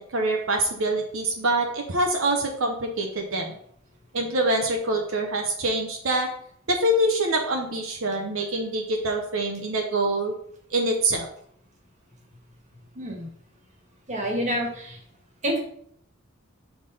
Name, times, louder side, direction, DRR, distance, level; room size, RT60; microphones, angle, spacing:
voice 1, 0.0-3.5 4.1-6.3 6.7-10.3 10.7-11.3, right 1 dB, 75° right, 2 dB, 0.8 m, -25 dB
voice 2, 12.9-13.3 14.1-14.9 15.4-15.6, equal, 35° right, 0 dB, 1.6 m, -27 dB
5.9 x 3.5 x 5.4 m, 0.66 s
head